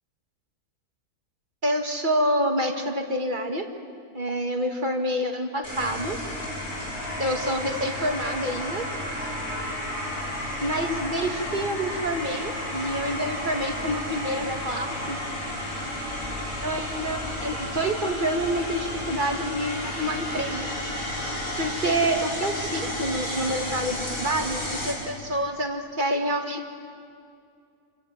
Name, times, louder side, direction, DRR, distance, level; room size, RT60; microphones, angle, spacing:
voice 1, 1.6-3.7 4.1-6.2 7.2-8.9 10.6-15.2 16.6-20.7 21.6-26.7, right 1 dB, 35° right, 3 dB, 2.2 m, -27 dB
sound 1, 5.6-24.9, left 1 dB, 75° left, 7.2 m, -32 dB
28.0 x 27.5 x 7.8 m, 2.4 s
omnidirectional pair, 1.6 m